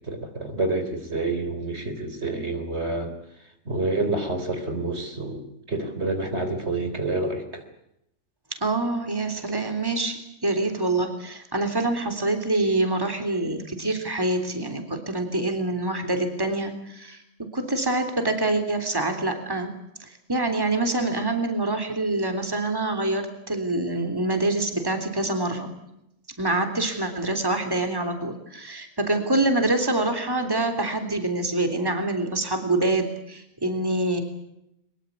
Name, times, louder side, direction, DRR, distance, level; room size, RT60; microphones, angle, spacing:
voice 1, 0.1-3.1 3.7-7.6, right 2 dB, 50° right, 7 dB, 3.8 m, -28 dB
voice 2, 8.6-17.2 17.5-19.7 20.0-25.8 26.4-34.2, right 2 dB, 15° right, 6 dB, 3.4 m, -26 dB
23.5 x 22.5 x 8.4 m, 0.81 s
omnidirectional pair, 1.4 m